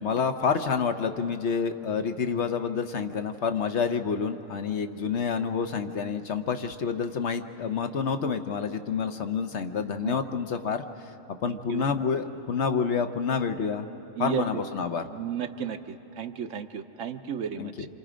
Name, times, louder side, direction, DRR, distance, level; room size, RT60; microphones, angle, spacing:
voice 1, 0.0-10.8 11.4-13.9 14.2-15.0 17.6-17.9, left 6 dB, 60° left, 7 dB, 1.1 m, -28 dB
voice 2, 11.4-11.9 14.2-14.6 15.1-17.9, right 8 dB, 75° right, 8 dB, 1.1 m, -34 dB
27.0 x 27.0 x 5.1 m, 2.8 s
omnidirectional pair, 1.4 m